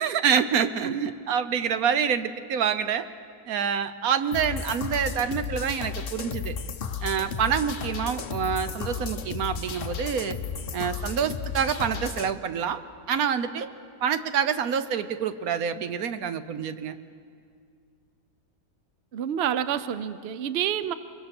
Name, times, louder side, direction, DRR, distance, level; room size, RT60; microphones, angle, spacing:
voice 1, 0.0-3.1 3.5-6.5 7.0-10.4 10.7-12.8 13.1-13.7 14.0-17.0, right 7 dB, 60° right, 11 dB, 1.1 m, -27 dB
voice 2, 0.8-1.2 19.1-20.9, right 9 dB, 75° right, 13 dB, 0.5 m, -28 dB
sound 1, 4.3-12.3, left 6 dB, 50° left, 0.6 m, -34 dB
24.0 x 22.5 x 6.0 m, 2.2 s
omnidirectional pair, 1.9 m